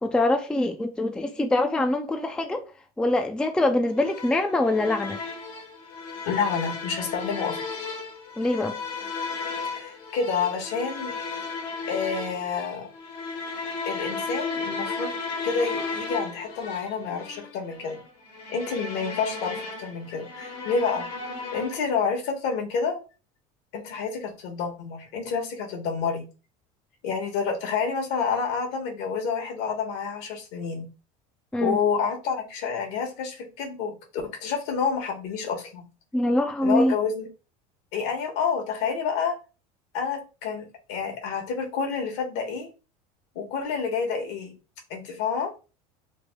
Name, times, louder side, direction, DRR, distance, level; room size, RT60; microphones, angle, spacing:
voice 1, 0.0-2.6 3.0-5.2 8.4-8.7 31.5-31.8 36.1-36.9, left 1 dB, 5° left, 0.4 m, -24 dB
sound 1, 4.0-22.0, left 4 dB, 85° left, 1.4 m, -35 dB
voice 2, 6.3-7.7 9.6-11.1 11.9-12.9 13.8-15.1 15.4-18.0 18.5-21.1 21.5-23.0 23.7-26.2 27.0-30.9 31.6-33.9 34.4-35.8 36.6-37.3 37.9-39.4 39.9-42.7 43.3-44.5 44.9-45.5, left 5 dB, 65° left, 1.3 m, -28 dB
3.3 x 2.1 x 3.5 m
supercardioid pair, 105°, 19 cm